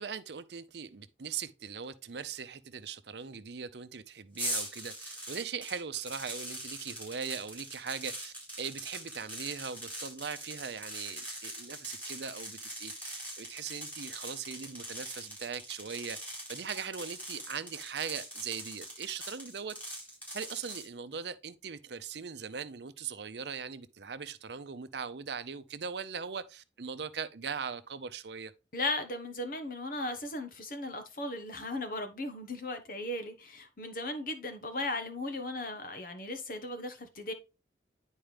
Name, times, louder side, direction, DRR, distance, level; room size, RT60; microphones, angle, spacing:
voice 1, 0.0-20.0 20.3-28.5, right 6 dB, 70° right, 0.7 m, -40 dB
sound 1, 4.4-20.9, right 1 dB, 10° left, 4.6 m, -42 dB
voice 2, 28.7-37.3, left 2 dB, 50° left, 1.1 m, -37 dB
10.5 x 4.6 x 3.4 m
head